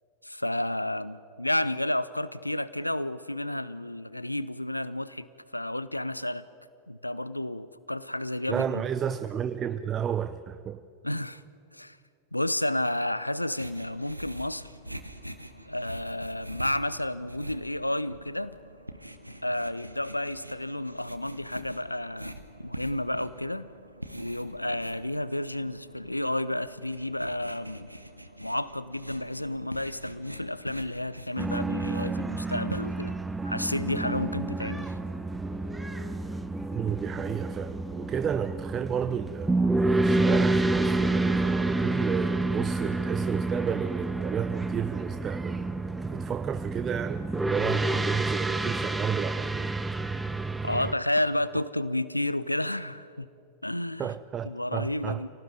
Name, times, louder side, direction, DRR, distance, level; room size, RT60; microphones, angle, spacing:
voice 1, 0.2-5.3 5.5-6.4 6.9-8.9 11.0-11.4 11.7-12.0 12.3-14.7 15.7-18.6 19.4-23.7 24.1-27.9 28.4-33.1 33.4-35.0 50.6-53.3 53.6-54.2 54.4-55.3, left 1 dB, 85° left, 0.6 m, -31 dB
voice 2, 8.5-10.8 36.7-39.5 40.0-45.7 46.1-49.7 54.0-55.3, right 8 dB, 25° right, 0.6 m, -32 dB
sound 1, 13.5-33.2, right 1 dB, 90° right, 1.2 m, -44 dB
sound 2, 31.4-50.9, right 2 dB, 5° right, 1.1 m, -29 dB
25.0 x 18.0 x 9.5 m
figure-of-eight pair, 90°, 0 cm